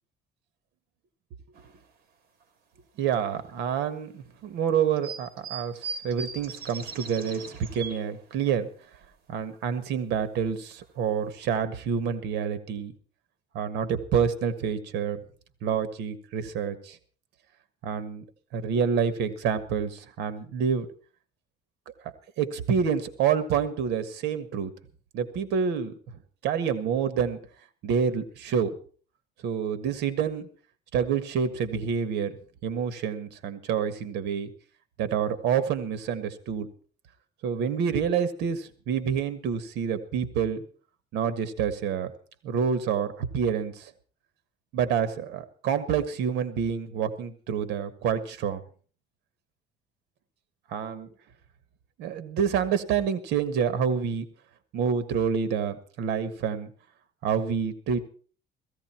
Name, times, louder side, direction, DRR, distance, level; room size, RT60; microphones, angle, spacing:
sound 1, 1.5-1.8 2.4-2.5 3.5-3.6 5.0-8.1 8.6-8.7 8.9-9.1 9.5-9.8 10.4-10.5 10.8-11.0 11.4-11.5, right 5 dB, 65° right, 3.5 m, -39 dB
voice 1, 3.0-7.4 7.7-8.7 9.3-12.9 13.5-15.2 15.6-17.0 17.8-18.2 18.5-20.9 22.0-24.7 25.1-25.9 26.4-27.4 27.8-28.7 29.4-30.5 30.9-32.4 32.6-34.5 35.0-36.7 37.4-40.6 41.1-42.1 42.4-43.9 44.7-48.6 50.7-51.1 52.0-54.3 54.7-56.7 57.2-58.0, right 7 dB, 85° right, 13 dB, 1.7 m, -28 dB
16.0 x 15.0 x 4.5 m, 0.42 s
cardioid pair, 110°, 17 cm